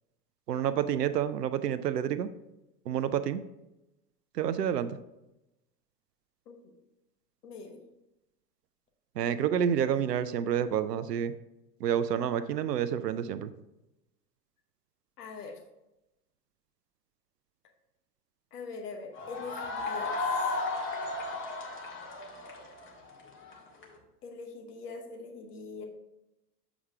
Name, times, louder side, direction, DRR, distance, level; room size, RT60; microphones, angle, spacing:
voice 1, 0.5-2.3 2.9-3.4 4.4-5.0 9.2-11.3 11.8-13.5, right 9 dB, 80° right, 12 dB, 0.6 m, -29 dB
voice 2, 7.4-7.8 15.2-15.6 18.5-20.5 24.2-25.8, left 4 dB, 70° left, 3 dB, 1.2 m, -43 dB
sound 1, 19.1-23.9, left 3 dB, 25° left, 1.5 m, -34 dB
7.2 x 4.9 x 3.4 m, 0.93 s
figure-of-eight pair, 85°, 48 cm